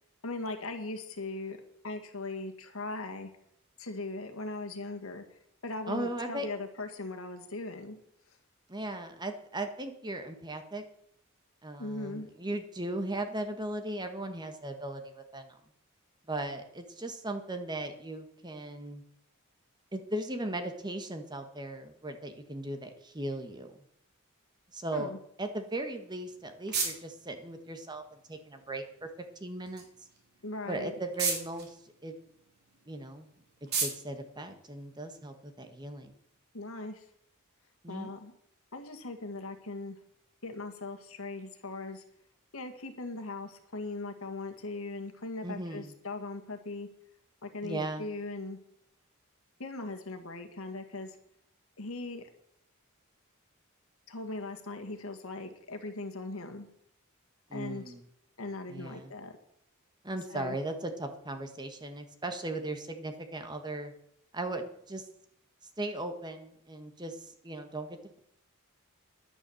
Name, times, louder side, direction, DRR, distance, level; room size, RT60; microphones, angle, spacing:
voice 1, 0.2-1.6 1.8-3.3 3.8-5.2 5.6-8.0 11.8-12.3 24.9-25.2 30.4-30.9 36.5-37.0 37.9-38.3 38.7-40.0 40.4-42.0 42.5-46.9 47.4-48.6 49.6-51.2 51.8-52.3 54.1-56.7 57.5-57.9 58.4-59.3 60.3-60.6, left 2 dB, 75° left, 5 dB, 1.7 m, -39 dB
voice 2, 5.9-6.5 8.7-10.8 11.6-15.6 16.3-19.0 19.9-23.7 24.7-25.1 25.4-29.1 29.4-29.8 30.7-31.8 32.0-32.2 32.9-33.3 33.8-36.1 37.8-38.1 45.4-45.9 47.6-48.0 57.5-58.0 58.7-59.1 60.0-63.9 64.3-65.1 65.8-68.2, right 1 dB, 20° right, 6 dB, 1.5 m, -37 dB
sound 1, 25.9-35.3, right 5 dB, 50° right, 3.6 m, -39 dB
10.5 x 9.8 x 7.1 m, 0.71 s
head